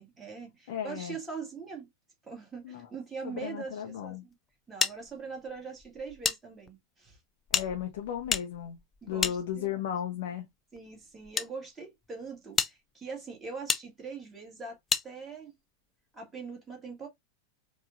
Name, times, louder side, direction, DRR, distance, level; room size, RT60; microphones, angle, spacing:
voice 1, 0.0-1.9 2.2-4.4 4.7-7.2 9.0-9.9 10.7-14.8 15.0-15.5 16.1-17.1, right 5 dB, 10° right, 1.8 m, -42 dB
voice 2, 0.7-1.2 2.6-2.9 3.2-4.2 7.5-8.8 9.1-10.5, left 9 dB, 55° left, 0.7 m, -35 dB
sound 1, 4.8-6.4 6.7-6.8 7.5-10.0 10.8-11.5 12.1-12.2 12.6-12.7 13.7-13.8 14.9-15.1, left 6 dB, 20° left, 0.4 m, -31 dB
4.8 x 2.4 x 2.5 m
figure-of-eight pair, 90°, 0 cm